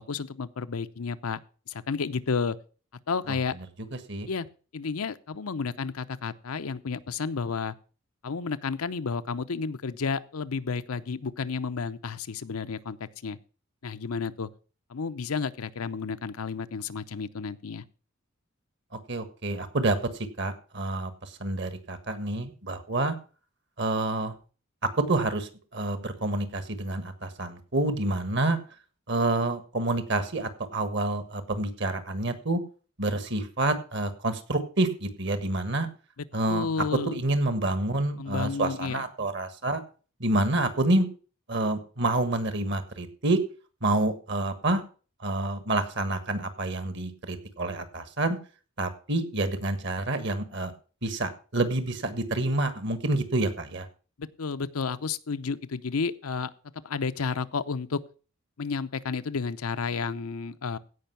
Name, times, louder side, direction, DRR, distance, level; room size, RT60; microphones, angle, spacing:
voice 1, 0.0-1.4 1.7-2.6 3.1-3.5 4.3-4.5 4.7-7.7 8.2-13.4 13.8-14.5 14.9-17.8 36.5-37.2 38.2-39.0 54.2-56.5 56.8-58.0 58.6-60.8, left 5 dB, 85° left, 12 dB, 0.7 m, -31 dB
voice 2, 3.9-4.3 19.1-20.0 20.4-23.1 23.8-24.3 24.8-28.6 29.1-32.6 33.0-35.9 36.3-36.7 37.1-39.8 40.2-41.1 41.5-43.4 43.8-44.8 45.2-48.4 48.8-50.7 51.0-53.9, right 2 dB, 55° right, 10 dB, 1.5 m, -28 dB
16.0 x 5.5 x 5.7 m, 0.37 s
head